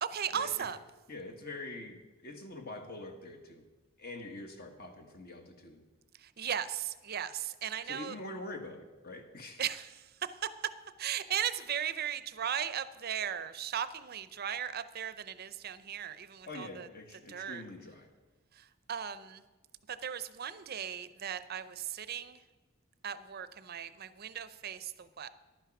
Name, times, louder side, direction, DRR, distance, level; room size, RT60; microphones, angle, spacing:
voice 1, 0.0-0.8 6.2-8.2 9.6-10.5 11.0-16.9 17.3-17.6 18.5-19.4 19.9-22.4 23.0-25.3, right 9 dB, 50° right, 14 dB, 0.6 m, -37 dB
voice 2, 1.1-3.6 4.0-5.8 7.9-9.6 16.5-18.1, left 2 dB, 50° left, 4 dB, 1.5 m, -45 dB
11.0 x 9.3 x 6.0 m, 1.2 s
head